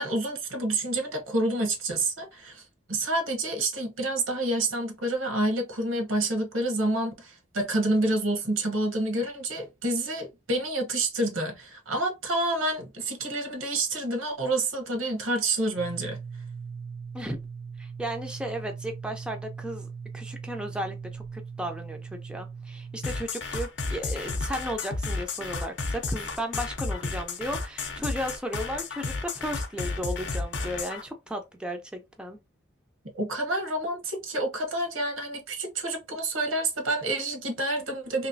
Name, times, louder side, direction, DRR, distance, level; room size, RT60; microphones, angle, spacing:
voice 1, 0.0-16.2 33.1-38.3, right 2 dB, 90° right, 1.1 m, -28 dB
sound 1, 15.8-23.3, right 5 dB, 75° right, 0.4 m, -40 dB
voice 2, 17.8-19.9 20.1-32.4, equal, 5° right, 0.4 m, -35 dB
sound 2, 23.0-31.0, left 3 dB, 60° left, 0.6 m, -32 dB
3.0 x 3.0 x 2.6 m
head